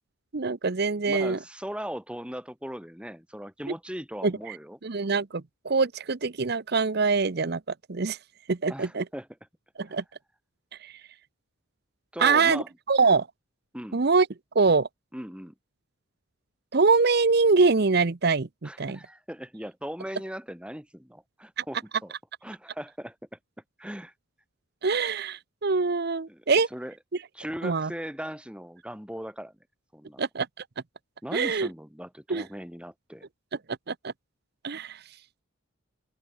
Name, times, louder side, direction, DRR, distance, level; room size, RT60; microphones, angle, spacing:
voice 1, 0.3-1.4 4.2-4.6 4.8-7.6 7.9-8.2 8.5-9.0 9.8-10.0 10.8-10.9 12.2-13.3 13.9-14.3 14.5-14.9 16.7-19.0 21.6-21.7 24.8-26.7 27.6-27.9 30.2-30.5 31.3-31.7 32.3-32.4 33.9-34.1 34.6-35.0, right 4 dB, 50° right, 0.7 m, -24 dB
voice 2, 1.1-4.8 8.7-9.3 9.8-10.0 12.1-12.7 13.7-14.0 15.1-15.5 18.6-22.1 22.4-23.4 23.8-24.1 26.3-26.4 26.7-26.9 27.3-29.5 29.9-30.2 31.2-33.3, equal, 5° right, 3.5 m, -38 dB
head